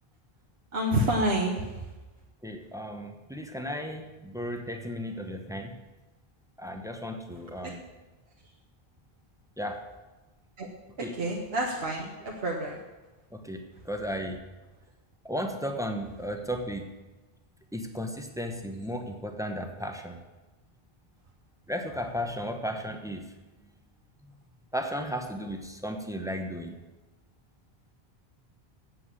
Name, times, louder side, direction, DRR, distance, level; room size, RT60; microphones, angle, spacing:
voice 1, 0.7-1.8 7.6-7.7 10.6-10.7 11.0-12.8, right 1 dB, 70° right, -2 dB, 1.4 m, -29 dB
voice 2, 2.4-5.7 6.6-7.8 9.6-9.8 11.0-11.1 13.3-14.4 15.2-16.9 17.7-20.2 21.7-23.3 24.2-24.3 24.7-26.8, equal, 5° right, 5 dB, 0.9 m, -35 dB
7.9 x 7.6 x 8.4 m, 1.1 s
omnidirectional pair, 1.0 m